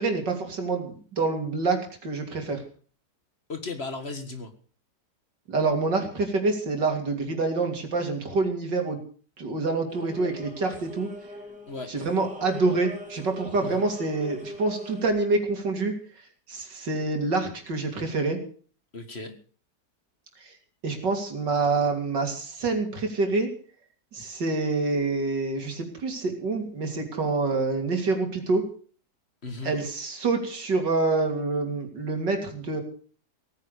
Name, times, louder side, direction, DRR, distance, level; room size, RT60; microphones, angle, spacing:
voice 1, 0.0-2.6 5.5-9.0 9.4-11.1 11.9-16.0 16.5-18.4 20.4-20.5 20.8-23.5 24.1-28.7 29.6-32.8, right 3 dB, 90° right, 4 dB, 3.7 m, -27 dB
voice 2, 3.5-4.5 11.7-11.9 13.6-13.8 18.9-19.4 29.4-29.8, left 3 dB, 35° left, 7 dB, 2.0 m, -36 dB
sound 1, 9.9-15.1, equal, 5° right, 3.1 m, -42 dB
17.5 x 10.0 x 6.7 m, 0.43 s
omnidirectional pair, 1.8 m